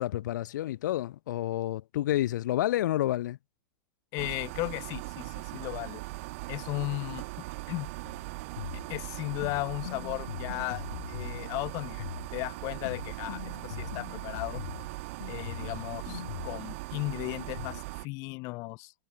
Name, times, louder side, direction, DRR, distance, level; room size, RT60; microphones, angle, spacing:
voice 1, 0.0-3.4, left 13 dB, 65° left, 1.4 m, -29 dB
voice 2, 4.1-6.0 6.5-7.2 7.7-7.9 8.9-12.0 12.3-14.6 15.3-18.9, left 26 dB, 30° left, 1.9 m, -36 dB
sound 1, 4.2-18.1, right 24 dB, 40° right, 1.0 m, -40 dB
sound 2, 8.0-17.8, left 12 dB, 85° left, 2.3 m, -42 dB
supercardioid pair, 175°, 11 cm